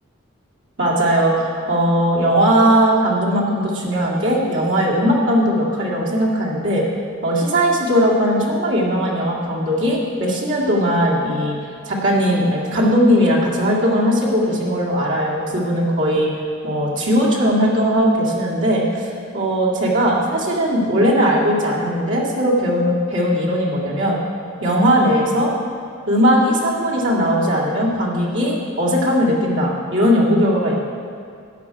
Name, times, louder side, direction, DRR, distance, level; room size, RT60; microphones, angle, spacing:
voice 1, 0.8-6.9 7.2-11.6 11.9-16.3 16.6-24.2 24.6-25.5 26.1-30.8, equal, 65° right, -4 dB, 2.3 m, -18 dB
13.0 x 10.0 x 4.8 m, 2.3 s
head